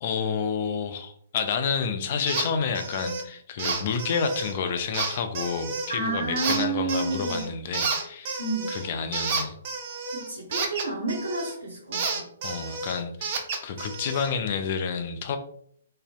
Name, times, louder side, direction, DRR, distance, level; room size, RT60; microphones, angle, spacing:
voice 1, 0.0-8.4 8.7-9.6 12.4-13.4 13.6-15.4, left 6 dB, 45° left, 8 dB, 0.3 m, -29 dB
sound 1, 2.3-2.5 2.7-3.2 3.6-4.5 4.9-5.9 6.4-7.5 7.7-11.5 11.9-14.3, right 4 dB, 40° right, 0.4 m, -31 dB
voice 2, 5.9-7.4 8.4-8.7 10.1-12.2, right 3 dB, 85° right, -4 dB, 0.6 m, -30 dB
2.5 x 2.0 x 2.4 m, 0.64 s
figure-of-eight pair, 125°, 0 cm